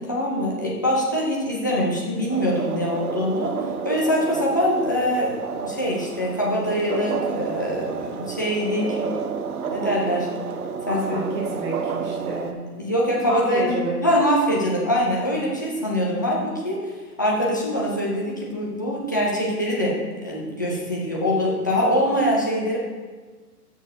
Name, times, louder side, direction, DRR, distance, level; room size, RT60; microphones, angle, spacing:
voice 1, 0.0-3.5 3.8-9.0 9.7-10.3 10.9-11.2 12.8-13.8 14.0-22.8, equal, 15° left, -4 dB, 0.4 m, -23 dB
sound 1, 2.3-12.5, right 6 dB, 65° right, 0.8 m, -30 dB
voice 2, 10.9-12.6 13.3-13.9, right 2 dB, 25° right, -4 dB, 1.9 m, -29 dB
14.0 x 6.2 x 2.7 m, 1.4 s
hypercardioid pair, 145°, 48 cm